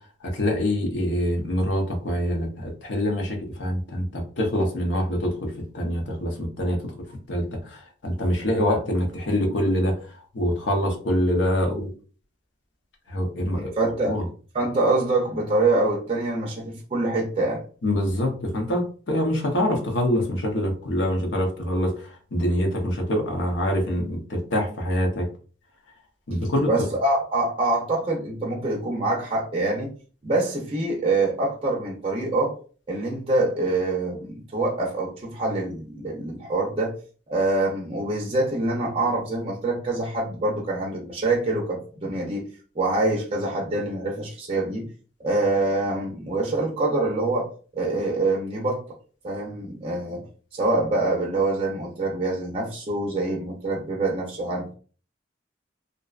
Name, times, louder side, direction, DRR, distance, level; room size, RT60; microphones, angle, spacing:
voice 1, 0.2-6.8 7.3-9.9 10.3-11.9 13.1-13.7 14.1-14.2 17.8-25.3 26.3-26.7, equal, 75° left, 2 dB, 0.7 m, -25 dB
voice 2, 13.5-14.2 14.5-17.6 26.7-29.9 30.2-32.5 32.9-36.9 37.3-42.4 42.8-44.9 45.2-47.5 47.7-48.8 49.2-50.2 50.5-54.7, right 2 dB, 30° right, -1 dB, 0.5 m, -25 dB
2.6 x 2.1 x 2.3 m, 0.40 s
head